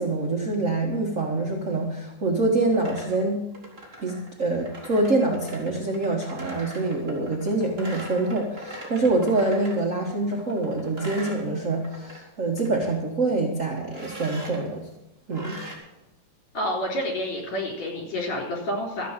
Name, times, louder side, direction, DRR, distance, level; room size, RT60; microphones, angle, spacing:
voice 1, 0.0-3.4 4.0-14.9 15.3-15.6, right 2 dB, 55° right, -1 dB, 0.8 m, -25 dB
sound 1, 2.5-9.8 10.3-12.2 12.5-13.0 13.9-14.6 15.3-15.8, right 1 dB, 20° right, 2.5 m, -41 dB
voice 2, 16.5-19.1, left 1 dB, 55° left, 0 dB, 4.9 m, -29 dB
13.0 x 8.4 x 7.3 m, 0.95 s
omnidirectional pair, 3.9 m